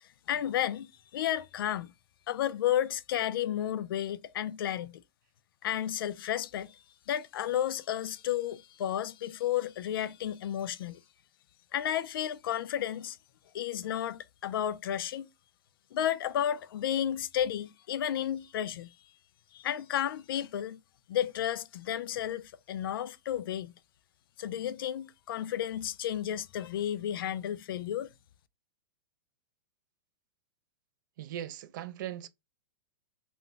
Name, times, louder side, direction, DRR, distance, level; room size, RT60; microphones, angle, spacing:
voice 1, 0.3-1.9 2.3-5.0 5.6-6.8 7.1-11.0 11.7-13.2 13.5-15.3 15.9-18.9 19.5-20.8 21.1-23.7 24.4-28.1, left 11 dB, 80° left, 0.4 m, -32 dB
voice 2, 31.2-32.3, right 11 dB, 60° right, 0.4 m, -39 dB
2.5 x 2.2 x 3.7 m
supercardioid pair, 150°, 12 cm